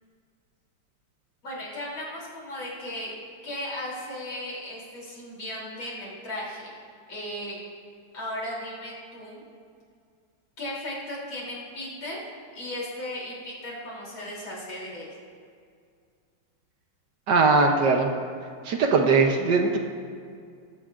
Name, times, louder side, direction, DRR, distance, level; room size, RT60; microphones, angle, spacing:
voice 1, 1.4-3.1 3.4-6.8 7.1-7.6 8.1-9.4 10.6-12.2 12.5-15.1, left 1 dB, 75° left, -5 dB, 4.1 m, -36 dB
voice 2, 17.3-18.1 18.6-19.8, right 4 dB, 65° right, 3 dB, 1.3 m, -20 dB
20.5 x 14.0 x 2.5 m, 2.2 s
omnidirectional pair, 2.2 m